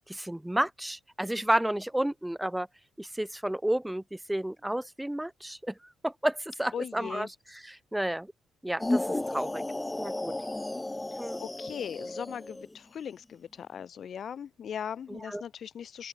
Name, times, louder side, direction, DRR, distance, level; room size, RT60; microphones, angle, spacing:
voice 1, 0.1-2.7 3.0-5.7 6.0-8.3 8.6-9.6 10.0-10.3 11.2-11.4 15.1-15.4, right 1 dB, 5° right, 0.9 m, -31 dB
voice 2, 6.7-7.3 11.4-16.1, left 8 dB, 55° left, 0.6 m, -39 dB
sound 1, 8.8-12.8, left 2 dB, 15° left, 3.6 m, -33 dB
open air
cardioid pair, 90°, 0 cm